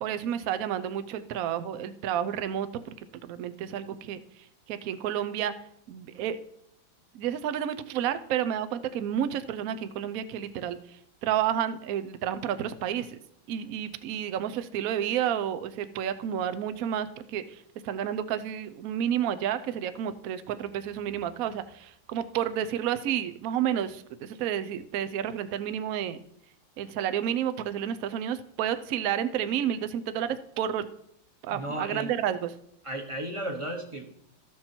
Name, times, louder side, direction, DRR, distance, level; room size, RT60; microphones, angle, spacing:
voice 1, 0.0-2.9 3.2-4.2 4.7-5.5 5.9-6.4 7.1-10.8 11.2-13.2 13.5-26.2 26.8-30.9 31.4-32.5, right 10 dB, 85° right, 11 dB, 0.7 m, -30 dB
voice 2, 31.5-32.1 32.8-34.1, right 1 dB, 25° right, 3 dB, 0.8 m, -34 dB
13.5 x 7.1 x 4.4 m, 0.73 s
omnidirectional pair, 2.4 m